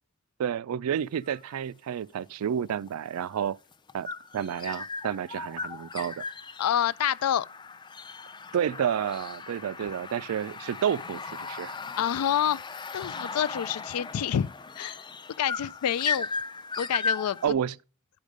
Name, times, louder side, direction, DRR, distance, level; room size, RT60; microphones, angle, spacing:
voice 1, 0.4-3.6 3.9-4.1 4.3-6.2 8.5-11.8 17.4-17.7, right 8 dB, 75° right, 0.3 m, -30 dB
sound 1, 1.2-1.6 2.7-17.5, left 4 dB, 20° left, 0.4 m, -37 dB
voice 2, 6.6-7.5 9.8-9.9 12.0-12.6 12.9-14.5 14.8-15.0 15.4-16.3 16.8-17.4, left 9 dB, 85° left, 0.4 m, -27 dB
11.5 x 5.0 x 5.2 m
head